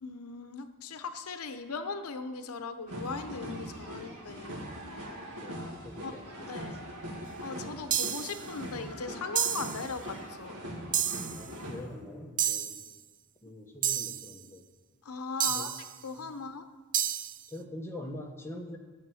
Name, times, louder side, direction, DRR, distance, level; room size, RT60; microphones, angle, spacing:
voice 1, 0.0-4.6 5.0-5.1 6.0-6.1 6.4-6.7 7.4-10.6 15.0-16.7, left 4 dB, 90° left, 9 dB, 0.7 m, -39 dB
sound 1, 2.9-11.8, equal, 80° right, 2.0 m, -41 dB
voice 2, 5.3-6.8 11.3-12.8 13.4-14.7 15.5-15.7 16.2-16.5 17.1-18.8, left 1 dB, 10° left, 1 dB, 1.2 m, -45 dB
sound 2, 7.9-8.4 9.4-9.9 10.9-11.4 12.4-12.9 13.8-14.3 15.4-15.9 16.9-17.4, right 10 dB, 40° right, 0.4 m, -30 dB
12.5 x 7.2 x 6.3 m, 1.4 s
head